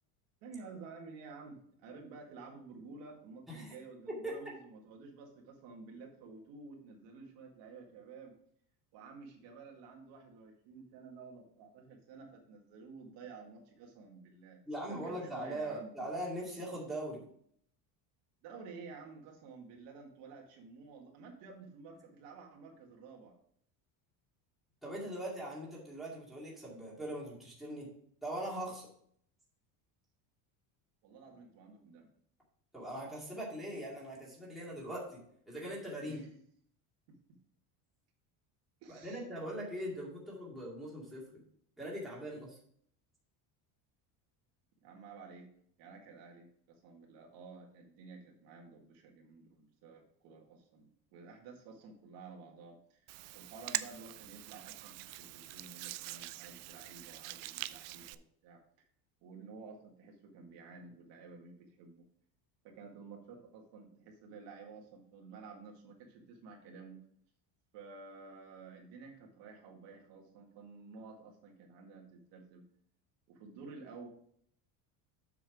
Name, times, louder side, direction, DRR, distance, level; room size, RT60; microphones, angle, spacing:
voice 1, 0.4-8.4 8.9-15.9 18.4-23.4 31.0-32.1 36.0-36.3 37.1-37.4 38.8-39.2 44.8-45.5 45.8-58.6 59.2-62.0 62.6-67.0 67.7-72.6 73.3-74.1, right 4 dB, 60° right, 1 dB, 1.9 m, -52 dB
voice 2, 14.7-17.2 24.8-27.9 28.2-28.9 32.7-36.2 38.9-41.3 41.8-42.6, right 1 dB, ahead, -6 dB, 2.3 m, -41 dB
Hands, 53.1-58.1, right 18 dB, 75° right, 0.6 m, -43 dB
7.5 x 5.9 x 4.8 m, 0.65 s
cardioid pair, 165°, 47 cm